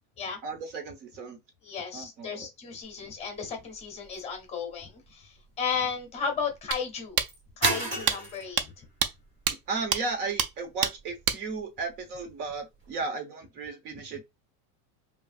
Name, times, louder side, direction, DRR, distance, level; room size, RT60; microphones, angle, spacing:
voice 1, 0.4-1.4 1.9-2.5 9.5-14.2, right 4 dB, 70° right, 1.3 m, -35 dB
voice 2, 1.6-7.2 7.6-8.9, left 6 dB, 15° left, 0.6 m, -34 dB
sound 1, 2.8-12.9, right 1 dB, 25° right, 1.3 m, -39 dB
sound 2, 6.7-6.8 7.2-7.3 7.6-7.7 8.1-8.2 8.6-8.7 9.0-9.1 9.5-9.6 9.9-10.0 10.4-10.5 10.8-10.9 11.3-11.4, right 8 dB, 50° right, 0.5 m, -25 dB
5.2 x 2.5 x 2.5 m
supercardioid pair, 170°, 49 cm